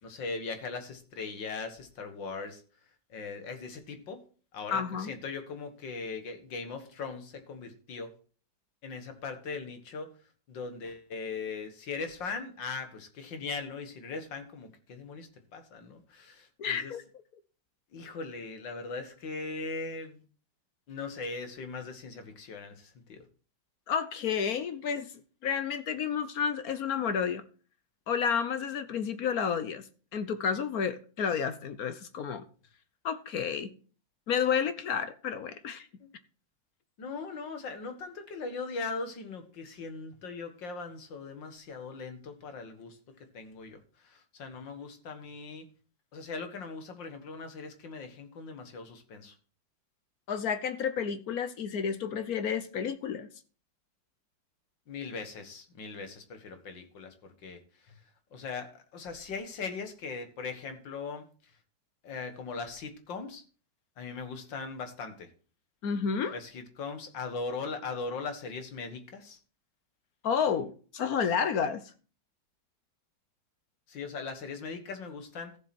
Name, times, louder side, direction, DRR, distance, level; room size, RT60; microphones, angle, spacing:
voice 1, 0.0-2.6 3.1-4.2 4.5-8.2 8.8-10.1 10.5-16.9 17.9-20.2 20.9-23.2 36.0-36.1 37.0-43.0 43.3-45.6 46.1-49.4 54.9-58.0 58.3-61.3 62.0-63.4 64.0-65.3 66.3-69.4 73.9-75.6, left 4 dB, 75° left, 2.3 m, -39 dB
voice 2, 4.7-5.1 16.6-17.0 23.9-25.1 25.4-27.4 28.1-32.4 33.0-33.7 34.3-35.9 50.3-53.3 65.8-66.3 70.2-71.9, left 7 dB, 60° left, 1.2 m, -31 dB
14.0 x 7.4 x 4.3 m
omnidirectional pair, 2.0 m